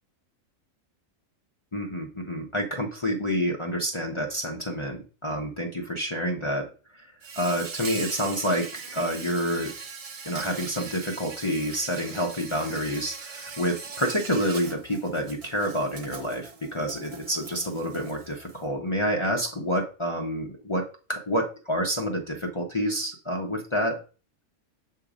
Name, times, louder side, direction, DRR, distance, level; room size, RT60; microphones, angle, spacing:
voice 1, 1.7-6.7 7.4-9.7 10.3-24.0, equal, 25° left, -1 dB, 0.7 m, -28 dB
Insect, 7.2-18.6, right 5 dB, 45° right, 0.5 m, -40 dB
7.0 x 2.8 x 4.9 m, 0.34 s
omnidirectional pair, 1.4 m